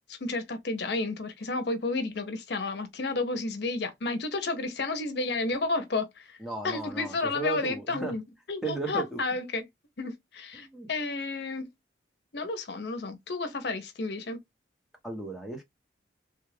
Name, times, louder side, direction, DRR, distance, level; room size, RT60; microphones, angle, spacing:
voice 1, 0.1-6.4 6.6-8.2 8.5-9.6 10.0-11.7 12.3-14.4, left 3 dB, 65° left, 0.7 m, -31 dB
voice 2, 6.4-8.1 8.6-9.2 10.5-10.9 15.0-15.6, right 3 dB, ahead, 0.9 m, -35 dB
3.4 x 2.4 x 3.2 m
head